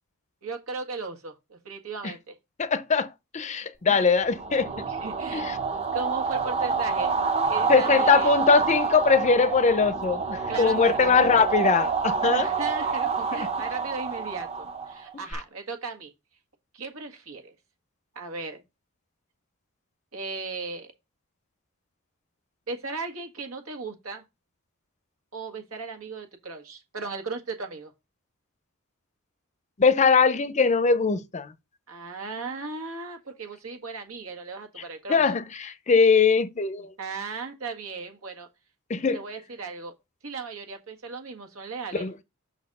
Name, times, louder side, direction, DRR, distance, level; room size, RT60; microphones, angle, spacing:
voice 1, 0.4-2.4 3.9-4.1 4.9-5.4 5.9-7.2 7.5-8.4 10.5-11.4 12.2-16.1 16.7-17.5 18.1-18.6 20.1-20.9 22.7-24.2 25.3-27.9 31.9-35.3 37.0-38.5 39.1-39.9 40.2-42.1, right 4 dB, 85° right, 1.8 m, -36 dB
voice 2, 2.6-4.7 5.3-5.5 7.7-12.5 13.3-13.5 29.8-31.5 35.1-36.9 38.9-39.2 41.9-42.1, left 5 dB, 35° left, 0.5 m, -21 dB
sound 1, 4.2-15.3, right 5 dB, 30° right, 0.7 m, -28 dB
6.2 x 4.2 x 5.3 m
head